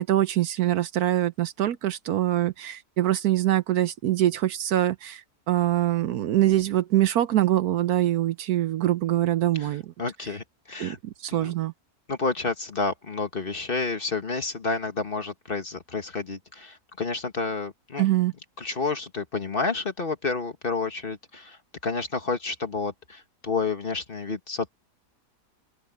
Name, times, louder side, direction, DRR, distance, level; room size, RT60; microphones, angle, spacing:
voice 1, 0.0-9.9 10.8-11.7 18.0-18.3, right 13 dB, 70° right, 1.1 m, -24 dB
voice 2, 10.0-11.0 11.3-11.5 12.1-18.0 18.6-21.6 21.8-24.7, left 4 dB, 35° left, 1.5 m, -30 dB
open air
omnidirectional pair, 1.8 m